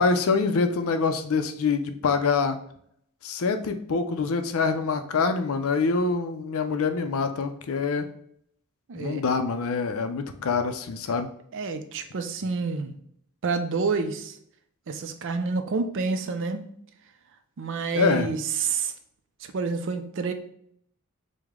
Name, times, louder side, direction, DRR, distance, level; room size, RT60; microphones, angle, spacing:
voice 1, 0.0-2.6 3.2-8.1 8.9-11.3 17.9-18.3, left 4 dB, 70° left, 8 dB, 0.5 m, -25 dB
voice 2, 8.9-9.2 11.5-12.9 13.4-14.4 14.9-16.6 17.6-18.9 19.4-20.3, right 4 dB, 60° right, 8 dB, 0.5 m, -28 dB
4.9 x 2.1 x 3.5 m, 0.67 s
head